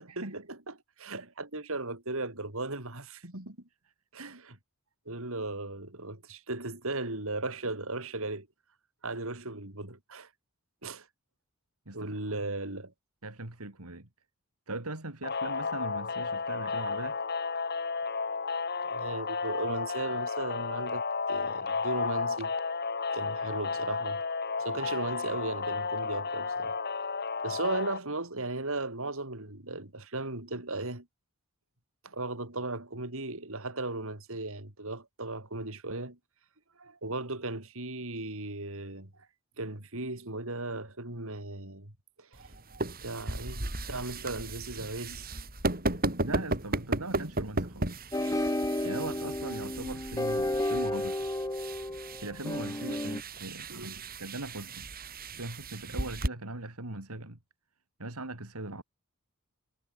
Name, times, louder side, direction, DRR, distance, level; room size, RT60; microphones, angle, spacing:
voice 1, 0.0-3.6 4.1-4.6 5.1-8.5 9.0-10.3 10.8-11.1 11.9-12.9 18.9-22.5 23.1-24.2 24.6-26.7 27.4-31.1 32.0-36.2 36.8-39.1 39.6-41.9 42.2-42.5 43.0-45.4 53.7-54.0, right 2 dB, 65° right, 4.6 m, -37 dB
voice 2, 11.8-12.2 13.2-14.1 14.7-17.2 46.2-47.9 48.8-51.3 52.2-54.9 55.4-57.4 58.0-58.8, right 2 dB, 80° right, 3.3 m, -40 dB
sound 1, 15.2-28.0, left 4 dB, 50° left, 4.3 m, -32 dB
sound 2, 42.3-56.3, right 2 dB, 45° right, 6.1 m, -36 dB
sound 3, 48.1-53.2, left 1 dB, 15° left, 1.5 m, -32 dB
head